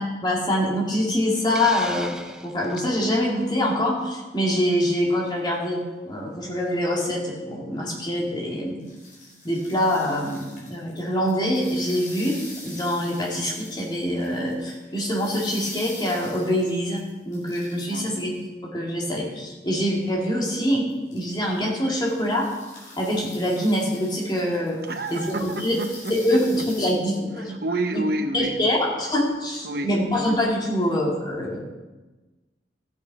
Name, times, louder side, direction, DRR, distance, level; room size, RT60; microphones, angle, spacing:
voice 1, 0.0-2.2 2.4-8.8 9.4-22.5 23.0-24.8 25.1-25.8 26.1-27.5 27.9-28.0 28.3-31.6, equal, 25° left, -2 dB, 2.3 m, -25 dB
Hiss, 1.5-2.9, right 1 dB, 5° right, 0.5 m, -37 dB
sound 1, 8.8-18.5 20.0-20.1 20.7-26.9, left 2 dB, 50° left, 4.2 m, -44 dB
voice 2, 17.9-18.2 24.9-26.4 27.4-28.8 29.6-30.0, right 2 dB, 60° right, 7 dB, 1.0 m, -29 dB
13.5 x 8.2 x 4.8 m, 1.2 s
head